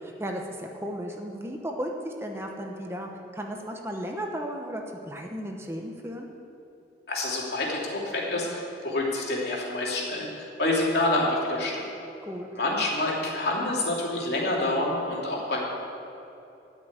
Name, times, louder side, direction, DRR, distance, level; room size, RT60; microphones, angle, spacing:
voice 1, 0.0-6.3 12.2-12.5, equal, 15° right, 2 dB, 0.9 m, -35 dB
voice 2, 7.1-10.3 10.6-11.9 12.5-15.6, left 2 dB, 70° left, -3 dB, 2.9 m, -27 dB
13.0 x 6.1 x 9.5 m, 3.0 s
head